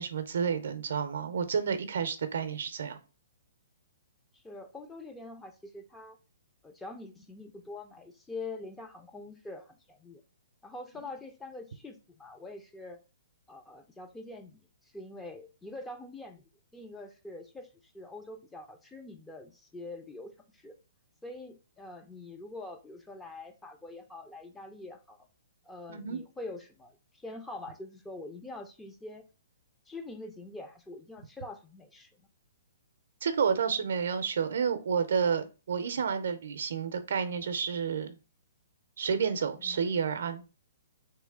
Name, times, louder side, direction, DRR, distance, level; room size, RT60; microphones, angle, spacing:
voice 1, 0.0-3.0 25.9-26.2 33.2-38.2 39.0-40.4, right 6 dB, 70° right, 0.6 m, -30 dB
voice 2, 4.3-6.2 6.6-10.2 10.6-13.0 13.5-14.6 14.9-16.4 16.7-17.7 17.9-20.8 21.2-25.2 25.7-29.2 29.9-32.3 39.6-39.8, left 2 dB, 10° left, 0.5 m, -44 dB
3.1 x 3.1 x 3.5 m
hypercardioid pair, 140°, 0 cm